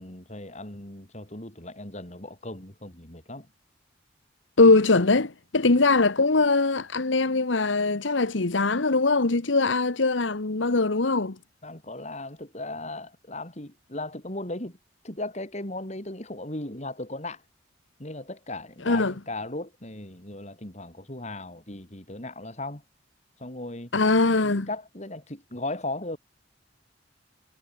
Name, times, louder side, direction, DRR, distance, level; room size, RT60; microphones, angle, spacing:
voice 1, 0.0-3.5 11.6-14.8 15.0-17.4 18.0-22.8 23.4-23.9 24.4-26.2, left 2 dB, 35° left, 4.0 m, -37 dB
voice 2, 4.6-11.3 18.8-19.1 23.9-24.7, left 3 dB, 75° left, 1.2 m, -21 dB
head